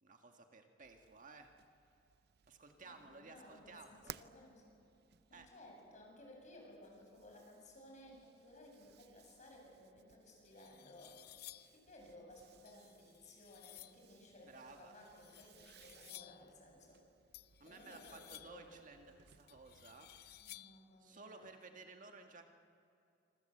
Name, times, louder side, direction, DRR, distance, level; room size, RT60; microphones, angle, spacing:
voice 1, 0.0-1.5 2.5-4.1 5.3-5.5 14.5-14.9 17.6-20.1 21.0-22.5, right 3 dB, 45° right, 4 dB, 1.8 m, -56 dB
sound 1, 0.8-20.6, right 8 dB, 60° right, 0.6 m, -62 dB
voice 2, 2.8-4.6 5.3-11.2 11.7-17.0 17.6-18.8 20.4-21.5, left 1 dB, 40° left, 0 dB, 7.8 m, -58 dB
sound 2, 9.9-10.0 10.4-11.8 12.7-14.1 15.1-16.5 17.3-18.7 19.5-20.9, left 15 dB, 60° left, 0.5 m, -57 dB
26.5 x 26.0 x 8.0 m, 2.6 s
head